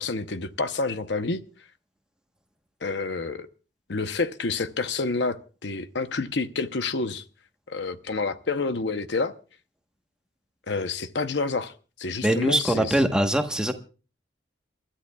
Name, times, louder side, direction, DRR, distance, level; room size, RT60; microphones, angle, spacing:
voice 1, 0.0-1.4 2.8-3.5 3.9-7.2 7.7-9.3 10.7-11.7 12.0-12.9, left 3 dB, 70° left, 0.8 m, -28 dB
voice 2, 12.2-13.7, right 1 dB, 5° right, 1.1 m, -22 dB
28.5 x 13.0 x 2.3 m
head